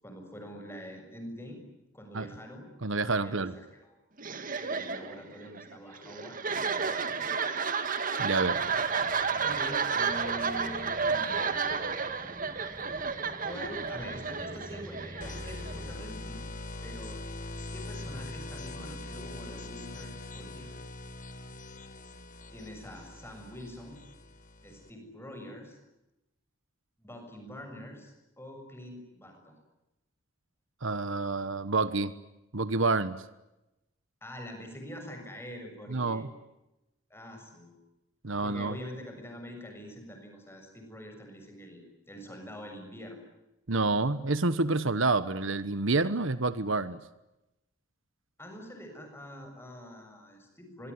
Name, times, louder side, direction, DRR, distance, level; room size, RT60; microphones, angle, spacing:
voice 1, 0.0-1.6 1.9-4.0 4.6-6.4 6.7-7.4 9.4-11.5 13.4-16.5 16.8-17.2 17.7-20.8 22.5-24.0 24.6-25.8 27.0-29.6 34.2-36.3 37.1-37.7 38.4-43.2 48.4-50.9, equal, 10° left, 4 dB, 6.9 m, -45 dB
voice 2, 2.8-3.5 8.2-8.6 30.8-32.1 32.5-33.2 35.9-36.3 38.2-38.7 43.7-47.0, right 3 dB, 65° right, 14 dB, 1.2 m, -28 dB
sound 1, 4.2-15.9, right 5 dB, 40° right, 2.0 m, -32 dB
sound 2, 8.4-16.0, equal, 10° right, 1.9 m, -48 dB
sound 3, 15.2-24.9, left 2 dB, 35° left, 2.1 m, -42 dB
25.5 x 23.5 x 9.7 m, 0.95 s
head